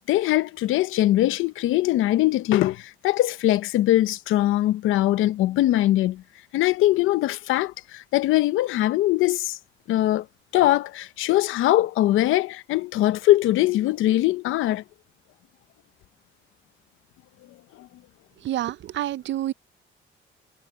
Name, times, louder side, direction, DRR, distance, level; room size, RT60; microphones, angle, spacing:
voice 1, 0.1-6.2 6.5-9.6 9.9-10.3 10.5-14.8 17.8-17.9, left 15 dB, 90° left, 0.8 m, -21 dB
voice 2, 18.4-19.5, right 13 dB, 65° right, 0.6 m, -28 dB
cardioid pair, 90°, 20 cm